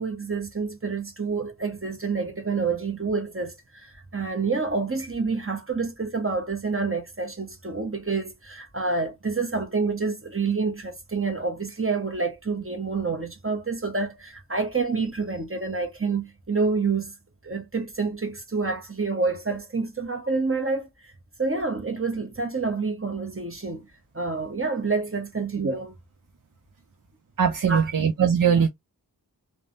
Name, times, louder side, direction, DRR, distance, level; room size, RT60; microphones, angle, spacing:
voice 1, 0.0-17.1 17.4-21.1 21.4-23.9 24.1-25.9 27.7-27.9, right 4 dB, 35° right, 1.0 m, -28 dB
voice 2, 27.4-28.7, right 7 dB, 55° right, 0.5 m, -20 dB
3.3 x 2.1 x 2.6 m
wide cardioid pair, 40°, 40 cm